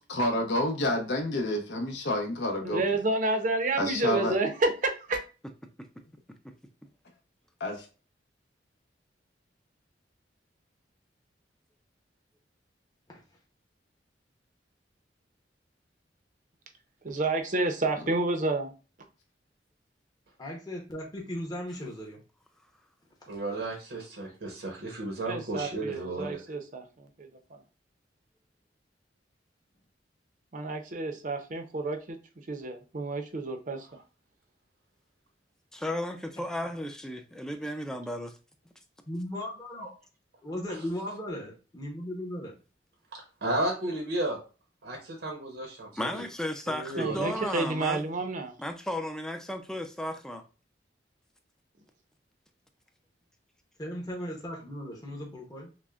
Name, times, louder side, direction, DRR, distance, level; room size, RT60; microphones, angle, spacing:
voice 1, 0.1-2.8 3.8-4.4 7.6-7.9, left 1 dB, 75° left, 0.8 m, -29 dB
voice 2, 2.6-5.2 17.0-18.7 25.3-27.6 30.5-32.2 32.5-33.9 47.0-48.5, right 2 dB, 45° right, 0.6 m, -30 dB
voice 3, 20.4-22.2 39.1-39.9 40.4-42.5 53.8-55.7, left 1 dB, 20° left, 0.8 m, -37 dB
voice 4, 23.3-26.4 43.4-44.4 44.8-46.2 46.7-47.3, right 2 dB, 80° right, 0.9 m, -33 dB
voice 5, 35.7-38.4 45.9-48.0 48.6-50.4, left 1 dB, 5° left, 0.4 m, -34 dB
6.0 x 2.1 x 2.4 m
head